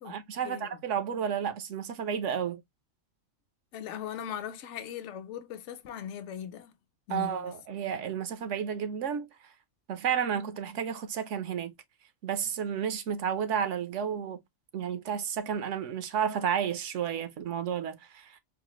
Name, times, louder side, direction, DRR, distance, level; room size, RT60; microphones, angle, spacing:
voice 1, 0.0-2.6 7.1-9.3 9.9-11.7 12.2-14.4 14.7-18.4, right 8 dB, 75° right, 1.0 m, -32 dB
voice 2, 3.7-6.7 7.1-7.5, left 9 dB, 70° left, 0.9 m, -39 dB
4.0 x 2.4 x 2.9 m
omnidirectional pair, 1.3 m